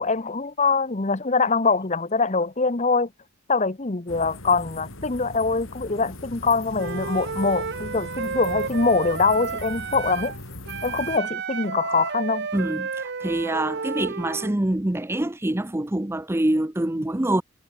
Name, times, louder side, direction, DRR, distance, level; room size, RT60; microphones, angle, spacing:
voice 1, 0.0-3.1 3.5-10.3 10.8-12.5, left 4 dB, 35° left, 0.9 m, -23 dB
sound 1, 4.1-11.2, left 1 dB, 75° left, 5.2 m, -39 dB
Wind instrument woodwind instrument, 6.7-10.4 10.7-14.6, right 5 dB, 55° right, 0.8 m, -31 dB
voice 2, 12.5-17.4, right 1 dB, 10° right, 0.6 m, -25 dB
head